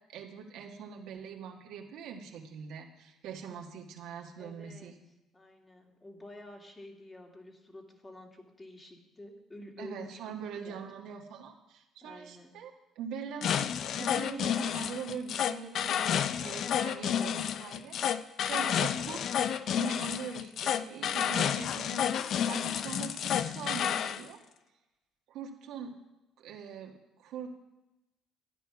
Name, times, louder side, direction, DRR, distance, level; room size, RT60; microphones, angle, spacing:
voice 1, 0.1-4.9 9.8-12.7 13.0-18.0 18.5-24.4 25.3-25.9 26.4-26.9 27.2-27.5, right 6 dB, 75° right, 1 dB, 1.6 m, -42 dB
voice 2, 4.4-4.9 5.3-10.4 10.7-10.8 12.0-12.5, left 1 dB, 20° left, 1 dB, 2.3 m, -49 dB
sound 1, 13.4-24.2, left 9 dB, 60° left, 0.5 m, -30 dB
13.0 x 9.0 x 5.9 m, 0.96 s
cardioid pair, 95°, 0 cm